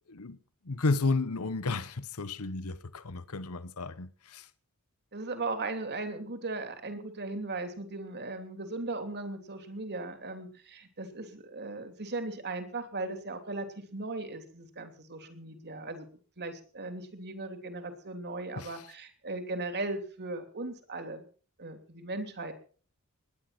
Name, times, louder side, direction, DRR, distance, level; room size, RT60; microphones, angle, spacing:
voice 1, 0.1-0.4 0.6-4.5 18.6-18.9, left 3 dB, 75° left, 1.0 m, -32 dB
voice 2, 5.1-16.1 16.4-21.2 21.6-22.5, right 2 dB, 50° right, 3.0 m, -37 dB
20.0 x 10.5 x 6.0 m
head